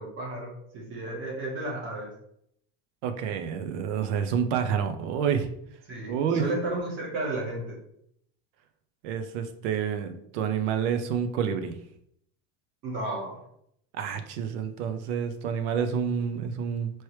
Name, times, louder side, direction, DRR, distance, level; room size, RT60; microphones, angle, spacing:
voice 1, 0.0-2.1 5.9-7.8 12.8-13.4, right 2 dB, 35° right, -2 dB, 1.4 m, -33 dB
voice 2, 3.0-5.5 6.1-6.5 9.0-11.8 13.9-16.9, right 7 dB, 70° right, 8 dB, 0.7 m, -28 dB
4.5 x 3.1 x 3.1 m, 0.72 s
cardioid pair, 170°, 36 cm